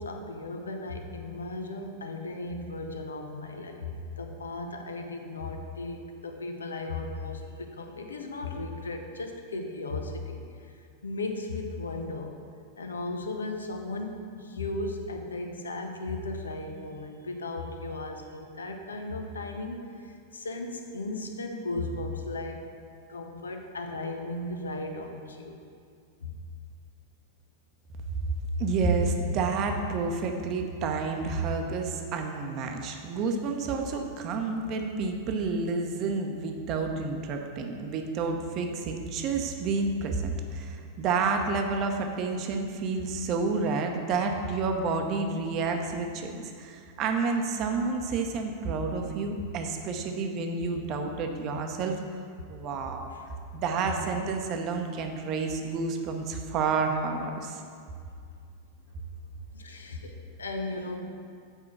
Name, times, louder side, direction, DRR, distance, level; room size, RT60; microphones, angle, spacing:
voice 1, 0.0-12.3 12.8-22.7 23.1-25.6 26.2-26.3 53.1-53.2 59.5-61.1, left 2 dB, 70° left, 4 dB, 0.8 m, -36 dB
voice 2, 28.6-52.0 52.5-53.1 53.5-57.6, right 4 dB, 35° right, 4 dB, 0.8 m, -29 dB
8.1 x 4.8 x 6.0 m, 2.3 s
figure-of-eight pair, 90°, 0 cm